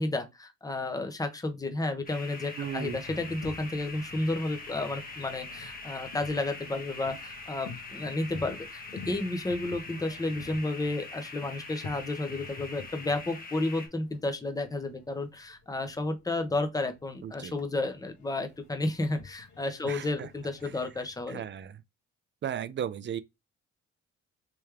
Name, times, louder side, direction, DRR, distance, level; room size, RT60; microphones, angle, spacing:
voice 1, 0.0-21.4, left 2 dB, 10° left, 0.8 m, -32 dB
sound 1, 2.1-13.9, left 3 dB, 30° left, 1.2 m, -43 dB
Boat Water vehicle, 2.6-21.6, left 4 dB, 70° left, 1.4 m, -50 dB
voice 2, 2.6-3.0 17.2-17.6 19.8-20.3 20.6-20.7 21.3-21.8 22.4-23.2, right 9 dB, 40° right, 0.5 m, -36 dB
3.4 x 3.1 x 3.4 m
cardioid pair, 90°, 30 cm